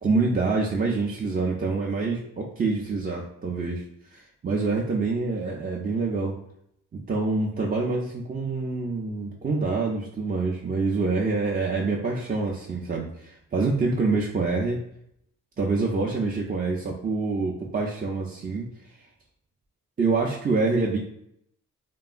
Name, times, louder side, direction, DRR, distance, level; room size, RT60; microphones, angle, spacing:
voice 1, 0.0-3.8 4.1-6.3 6.9-14.8 15.6-18.7 20.0-21.0, right 3 dB, 25° right, -2 dB, 0.4 m, -26 dB
2.9 x 2.2 x 2.4 m, 0.74 s
supercardioid pair, 45°, 34 cm